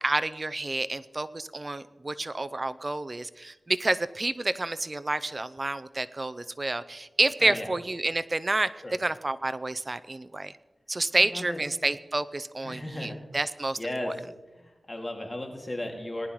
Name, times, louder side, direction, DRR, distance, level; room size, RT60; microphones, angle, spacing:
voice 1, 0.0-8.7 9.0-10.5 10.9-14.1, right 2 dB, 40° right, 13 dB, 0.5 m, -29 dB
voice 2, 7.4-7.7 8.8-8.9 11.1-11.6 12.6-13.2 13.8-14.2 14.6-16.3, left 1 dB, 35° left, 2 dB, 2.3 m, -35 dB
19.5 x 10.5 x 3.1 m, 1.2 s
cardioid pair, 55°, 0 cm